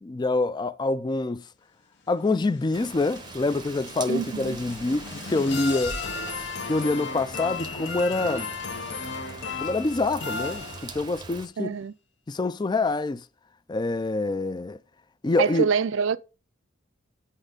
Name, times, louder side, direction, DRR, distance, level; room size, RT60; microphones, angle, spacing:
voice 1, 0.0-1.4 2.1-6.0 6.7-8.5 9.6-11.8 12.3-13.2 13.7-14.8 15.2-15.6, left 2 dB, 20° left, 0.3 m, -26 dB
sound 1, 2.3-11.2, left 4 dB, 55° left, 0.9 m, -35 dB
Rain, 2.7-11.5, right 4 dB, 20° right, 0.7 m, -42 dB
voice 2, 4.1-4.6 11.6-11.9 15.4-16.2, right 6 dB, 60° right, 0.4 m, -25 dB
8.8 x 4.2 x 5.1 m
head